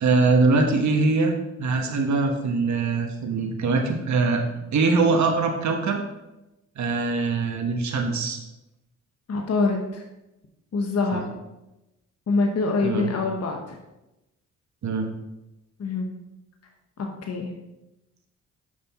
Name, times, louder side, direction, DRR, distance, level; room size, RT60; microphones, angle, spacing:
voice 1, 0.0-1.3 1.6-4.4 4.7-6.0 6.8-8.4 11.1-11.2 12.8-13.1 14.8-15.1, right 3 dB, 60° right, 3 dB, 1.1 m, -22 dB
voice 2, 9.3-10.0 10.7-11.3 12.3-13.8 15.8-16.1 17.0-17.5, left 3 dB, 50° left, 2 dB, 1.1 m, -25 dB
6.4 x 5.4 x 4.1 m, 0.95 s
supercardioid pair, 60°, 33 cm